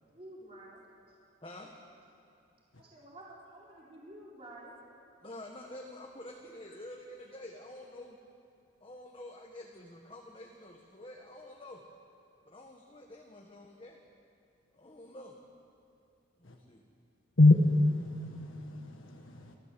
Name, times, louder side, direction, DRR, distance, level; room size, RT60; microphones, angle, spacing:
voice 1, 0.0-0.8 2.8-4.8, right 1 dB, 30° right, 4.2 m, -50 dB
voice 2, 5.2-8.2 8.8-11.8 12.5-14.0 14.7-15.4 16.4-16.8, left 1 dB, 25° left, 1.6 m, -48 dB
voice 3, 17.4-19.5, left 2 dB, 80° left, 1.6 m, -26 dB
29.5 x 13.5 x 7.7 m
head